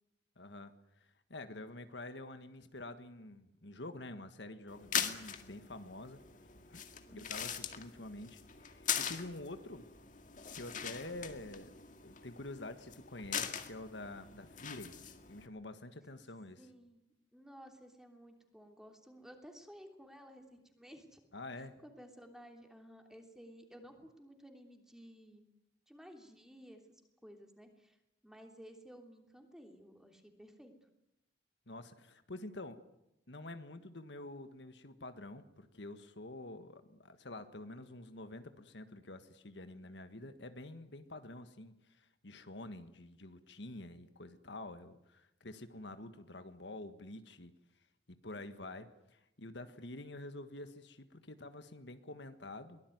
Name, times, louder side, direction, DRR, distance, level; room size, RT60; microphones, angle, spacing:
voice 1, 0.4-0.7 1.3-6.2 6.7-6.8 7.1-9.9 10.5-11.7 12.0-15.0 15.3-16.7 21.3-21.8 31.7-32.8 33.3-47.5 48.1-52.8, left 2 dB, 70° left, 9 dB, 1.6 m, -48 dB
sound 1, 4.7-15.5, left 8 dB, 45° left, 2.0 m, -41 dB
voice 2, 7.1-7.4 16.6-17.0 17.3-21.2 21.8-25.4 25.9-28.0 28.2-30.7, equal, 5° right, 4 dB, 3.2 m, -55 dB
23.5 x 18.5 x 9.4 m, 0.86 s
head